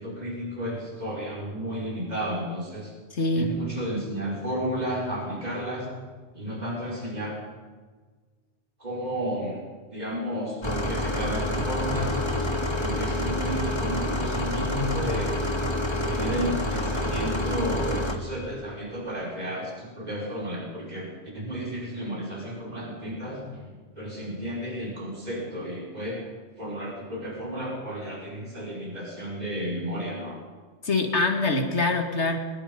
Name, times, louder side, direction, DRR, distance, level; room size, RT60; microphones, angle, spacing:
voice 1, 0.0-2.9 3.3-5.9 6.3-7.4 8.8-12.2 12.8-15.4 16.0-26.3 26.6-30.4, equal, 35° right, -3 dB, 5.4 m, -32 dB
voice 2, 3.1-3.5 30.8-32.4, left 2 dB, 70° left, 4 dB, 2.8 m, -24 dB
sound 1, 10.6-18.2, left 1 dB, 20° left, 2.0 m, -27 dB
23.5 x 21.0 x 5.4 m, 1.4 s
omnidirectional pair, 1.2 m